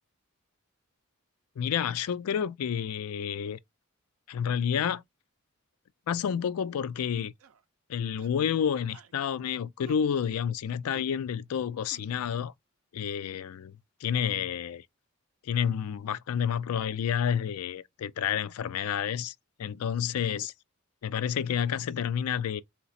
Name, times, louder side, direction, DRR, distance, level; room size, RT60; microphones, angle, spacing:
voice 1, 1.6-3.6 4.3-5.0 6.1-7.3 7.9-12.5 12.9-13.8 14.0-14.8 15.4-20.5 21.0-22.6, left 8 dB, 90° left, 0.4 m, -30 dB
sound 1, 7.4-7.6 8.2-8.5 8.9-9.2 9.8-10.1 10.9-11.1 11.9-12.0, right 4 dB, 80° right, 0.6 m, -51 dB
3.9 x 2.9 x 4.1 m
head